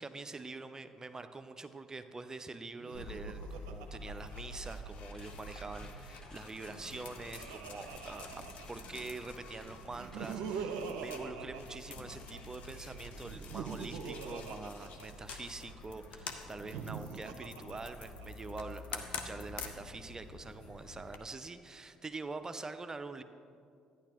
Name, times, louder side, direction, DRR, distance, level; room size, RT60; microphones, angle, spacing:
voice 1, 0.0-23.2, right 3 dB, 25° right, 10 dB, 0.5 m, -45 dB
Laughter, 2.8-5.3 6.6-9.0 9.9-12.4 13.2-15.7 16.5-18.5, right 6 dB, 70° right, 0.5 m, -43 dB
sound 1, 2.9-21.2, left 3 dB, 60° left, 0.8 m, -47 dB
sound 2, 5.0-12.3 12.6-13.8, left 1 dB, 25° left, 1.7 m, -61 dB
11.5 x 9.8 x 3.0 m, 2.4 s
hypercardioid pair, 50°, 2 cm